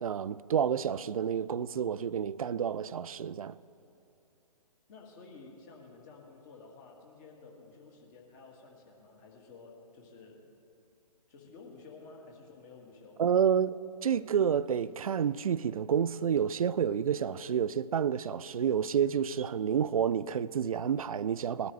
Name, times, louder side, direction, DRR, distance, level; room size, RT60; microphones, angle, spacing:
voice 1, 0.0-3.6 13.2-13.7 14.0-21.7, right 8 dB, 60° right, 0.4 m, -29 dB
voice 2, 4.9-10.5 11.3-13.2, left 4 dB, 30° left, 2.0 m, -52 dB
20.0 x 12.0 x 3.2 m
figure-of-eight pair, 135°, 21 cm